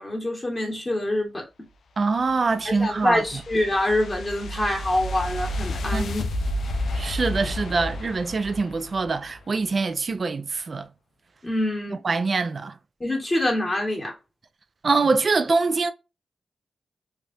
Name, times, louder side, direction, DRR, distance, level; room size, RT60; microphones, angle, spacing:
voice 1, 0.0-1.4 2.6-6.3 11.4-12.0 13.0-14.1, left 1 dB, 25° left, 1.6 m, -25 dB
voice 2, 2.0-3.2 5.9-6.1 6.9-10.9 12.0-12.7 14.8-15.9, right 4 dB, 50° right, 0.4 m, -24 dB
sound 1, 2.2-9.4, left 1 dB, 80° left, 0.4 m, -31 dB
3.3 x 2.4 x 2.6 m
cardioid pair, 80°, 0 cm